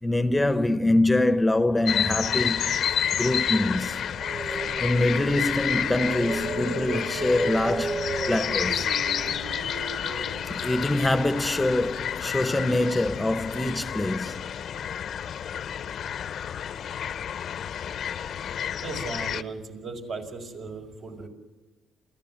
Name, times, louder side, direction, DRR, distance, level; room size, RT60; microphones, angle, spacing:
voice 1, 0.0-2.6 3.2-4.0 4.8-8.9 10.5-14.5, left 1 dB, 10° left, 0.9 m, -24 dB
sound 1, 1.9-19.4, left 9 dB, 65° left, 0.8 m, -30 dB
sound 2, 4.0-12.1, right 3 dB, 80° right, 1.6 m, -35 dB
voice 2, 18.8-21.3, right 3 dB, 65° right, 5.3 m, -37 dB
28.5 x 14.5 x 7.4 m
cardioid pair, 90°, 0 cm